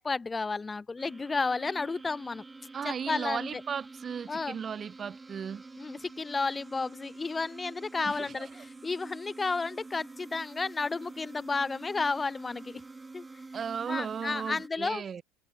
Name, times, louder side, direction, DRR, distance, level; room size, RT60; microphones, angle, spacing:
voice 1, 0.0-2.4 2.8-3.6 4.3-4.6 5.8-12.8 13.1-13.2 13.9-15.2, left 4 dB, 20° left, 1.0 m, -32 dB
sound 1, 1.0-14.7, right 3 dB, 15° right, 6.6 m, -48 dB
voice 2, 2.7-5.6 8.0-8.5 13.5-15.2, right 7 dB, 35° right, 4.5 m, -36 dB
hypercardioid pair, 85°, 0 cm